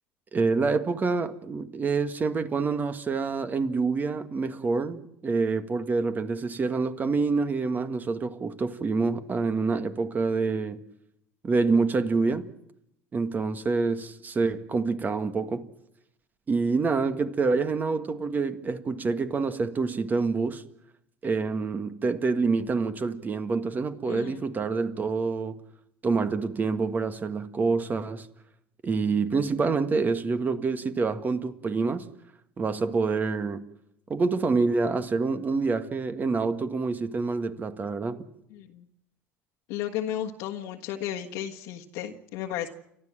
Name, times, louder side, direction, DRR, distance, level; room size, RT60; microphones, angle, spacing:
voice 1, 0.3-10.8 11.4-12.4 13.1-15.7 16.5-20.6 21.2-25.5 26.0-28.3 28.8-32.1 32.6-33.6 34.1-38.3, right 4 dB, 30° right, 1.7 m, -27 dB
voice 2, 24.1-24.4 38.5-38.8 39.7-42.7, left 11 dB, 70° left, 1.5 m, -34 dB
30.0 x 13.0 x 7.6 m
supercardioid pair, 90°, 6 cm